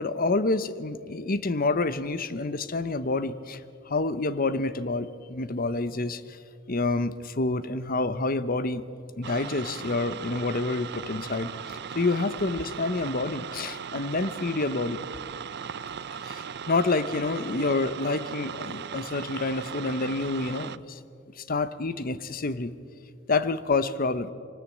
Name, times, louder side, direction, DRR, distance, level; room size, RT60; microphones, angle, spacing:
voice 1, 0.0-3.6 3.9-6.4 6.7-8.8 9.2-15.0 16.2-21.0 21.4-22.7 23.3-24.3, left 3 dB, 45° left, 14 dB, 0.9 m, -28 dB
sound 1, 9.2-20.8, right 7 dB, 55° right, 0.6 m, -38 dB
24.5 x 19.5 x 8.6 m, 2.5 s
head